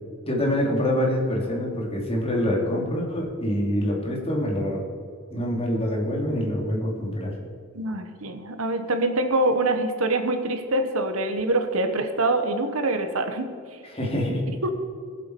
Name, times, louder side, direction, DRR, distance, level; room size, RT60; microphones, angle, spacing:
voice 1, 0.3-4.8 5.3-7.3 13.9-14.4, equal, 30° left, -2 dB, 2.6 m, -25 dB
voice 2, 7.7-13.5 14.6-14.7, right 2 dB, 75° right, 7 dB, 1.2 m, -25 dB
20.0 x 7.4 x 4.6 m, 2.1 s
head